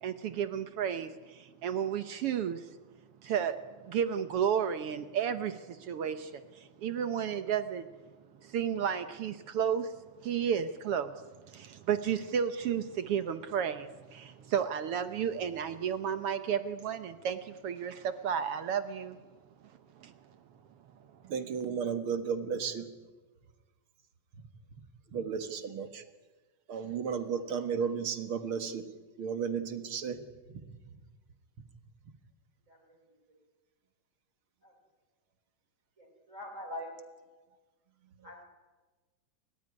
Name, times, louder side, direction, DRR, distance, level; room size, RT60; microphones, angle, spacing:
voice 1, 0.0-2.7 3.2-3.6 3.8-7.9 8.4-9.9 10.2-19.2 20.0-20.1, right 8 dB, 65° right, 11 dB, 1.5 m, -32 dB
voice 2, 21.2-22.9 25.1-26.0 26.7-28.9 29.2-30.2, right 6 dB, 50° right, 9 dB, 2.1 m, -33 dB
voice 3, 32.7-33.0 33.3-33.4 34.6-34.7 36.0-36.9 38.2-38.5, left 1 dB, 25° right, 0 dB, 4.4 m, -44 dB
29.5 x 15.0 x 9.7 m, 1.3 s
omnidirectional pair, 3.5 m